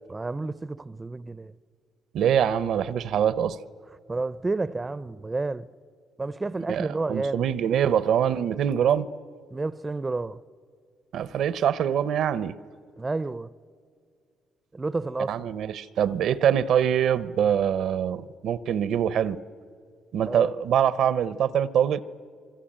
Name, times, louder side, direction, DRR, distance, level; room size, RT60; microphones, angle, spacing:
voice 1, 0.1-1.5 4.1-5.7 6.2-7.5 9.5-10.4 13.0-13.5 14.7-15.5 20.3-20.5, right 3 dB, 20° right, 0.6 m, -30 dB
voice 2, 2.1-3.6 6.7-9.1 11.1-12.6 15.3-19.4 20.1-22.0, right 9 dB, 75° right, 0.8 m, -24 dB
25.5 x 23.5 x 8.8 m
cardioid pair, 90°, 0 cm